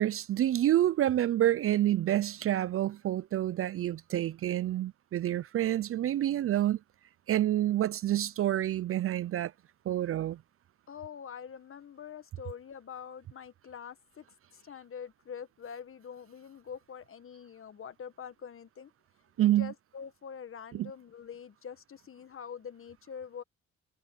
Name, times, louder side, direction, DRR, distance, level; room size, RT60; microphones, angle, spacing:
voice 1, 0.0-6.8 7.3-9.5 9.9-10.4 19.4-19.7 20.7-20.9, right 12 dB, 50° right, 0.4 m, -28 dB
voice 2, 10.9-14.2 14.5-18.9 19.4-23.4, left 7 dB, 45° left, 1.5 m, -45 dB
cardioid pair, 90°, 30 cm